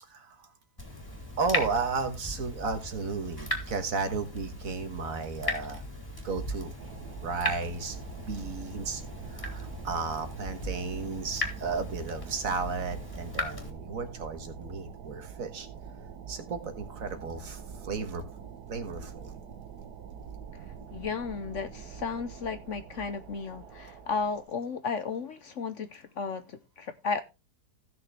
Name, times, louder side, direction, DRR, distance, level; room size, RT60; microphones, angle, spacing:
voice 1, 0.1-0.5 1.4-5.8 6.2-6.8 7.2-8.0 8.2-9.0 9.3-15.7 16.3-18.2 18.7-19.3, right 4 dB, 55° right, 1.7 m, -34 dB
Water tap faucet / Drip, 0.8-13.7, left 1 dB, 15° left, 2.4 m, -38 dB
sound 1, 6.8-24.5, right 7 dB, 80° right, 1.6 m, -45 dB
voice 2, 20.9-27.2, left 5 dB, 55° left, 0.9 m, -34 dB
16.0 x 6.4 x 3.4 m
omnidirectional pair, 1.7 m